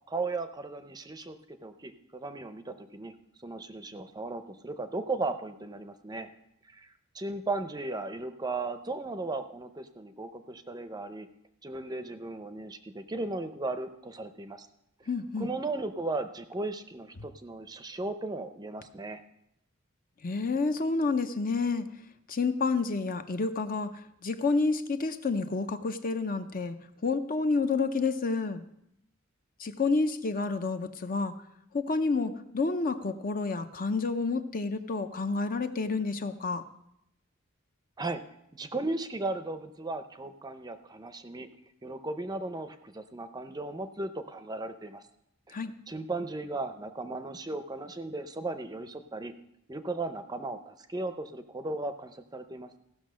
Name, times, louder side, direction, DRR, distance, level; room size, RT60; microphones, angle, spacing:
voice 1, 0.1-3.1 3.4-6.3 6.7-11.3 11.6-14.7 15.4-19.2 38.0-38.2 38.5-41.5 41.8-45.0 45.5-49.3 49.7-52.8, right 2 dB, 20° right, 10 dB, 0.6 m, -36 dB
voice 2, 15.1-15.5 20.2-21.9 22.3-23.9 24.2-26.8 27.0-28.6 29.6-31.3 31.7-36.6 45.5-45.7, left 3 dB, 45° left, 9 dB, 0.7 m, -29 dB
15.5 x 6.1 x 6.3 m, 0.79 s
head